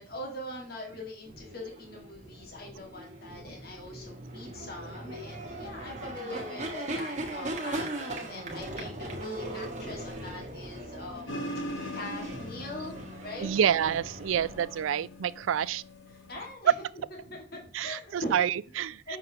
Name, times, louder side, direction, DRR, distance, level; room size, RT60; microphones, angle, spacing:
voice 1, 0.0-11.6 11.9-13.5 16.1-16.7 17.1-18.4 18.8-19.2, left 1 dB, 50° left, 1.8 m, -42 dB
sound 1, 1.2-14.9, right 1 dB, 35° right, 1.5 m, -39 dB
sound 2, 11.3-16.5, equal, 85° left, 1.2 m, -41 dB
voice 2, 13.4-15.8 16.6-16.7 17.7-19.2, right 9 dB, 85° right, 0.3 m, -27 dB
6.8 x 6.0 x 2.9 m
head